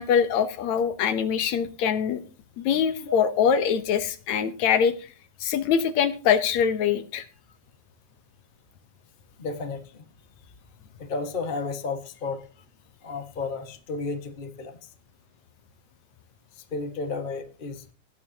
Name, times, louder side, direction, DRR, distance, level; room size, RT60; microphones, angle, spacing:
voice 1, 0.0-2.2 2.6-4.9 5.4-7.3, left 7 dB, 70° left, 11 dB, 2.1 m, -23 dB
voice 2, 9.4-10.0 11.0-12.4 13.0-14.8 16.5-17.8, left 4 dB, 30° left, 5 dB, 0.9 m, -32 dB
18.0 x 9.9 x 2.9 m, 0.37 s
omnidirectional pair, 3.6 m